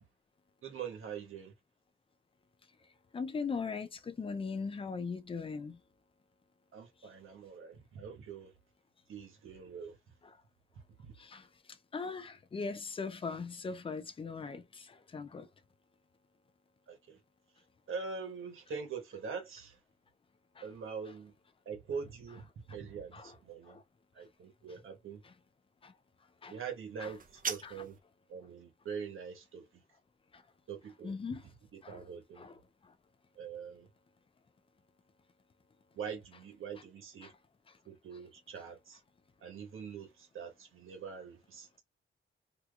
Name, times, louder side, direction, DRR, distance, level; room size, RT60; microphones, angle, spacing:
voice 1, 0.6-1.5 6.7-8.5 9.1-9.9 11.0-11.1 16.9-17.2 17.9-19.8 20.6-21.3 21.6-23.8 24.1-25.2 26.5-28.0 28.3-29.6 30.7-31.2 31.7-32.4 33.4-33.9 35.9-37.3 37.8-39.0 39.4-41.8, right 6 dB, 85° right, 1.4 m, -43 dB
voice 2, 3.1-5.8 11.2-11.5 11.9-15.5 20.6-20.7 23.1-23.3 23.7-23.8 25.2-25.3 25.8-25.9 26.4-26.6 27.0-27.1 27.6-27.7 30.3-30.4 31.0-31.4 31.8-32.1 32.4-32.5 32.8-32.9 37.2-37.3, left 5 dB, 25° left, 0.5 m, -39 dB
sound 1, 27.0-28.0, right 6 dB, 40° right, 0.6 m, -40 dB
3.5 x 2.9 x 2.4 m
wide cardioid pair, 155°, 20 cm